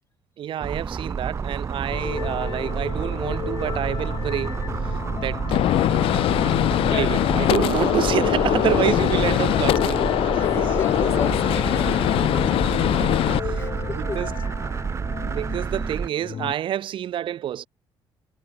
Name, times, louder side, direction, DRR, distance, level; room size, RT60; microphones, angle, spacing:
voice 1, 0.4-5.7 6.9-10.8 12.8-13.1 13.4-14.3 15.2-17.7, right 11 dB, 60° right, 1.9 m, -28 dB
sound 1, 0.6-16.1, right 5 dB, 30° right, 0.9 m, -29 dB
sound 2, 1.9-16.5, left 8 dB, 50° left, 3.3 m, -34 dB
Gunshot gunfire, 5.5-13.4, left 14 dB, 75° left, 1.1 m, -22 dB
voice 2, 9.3-9.9 10.4-12.1 13.5-14.2, left 4 dB, 25° left, 2.7 m, -36 dB
cardioid pair, 120°, 10 cm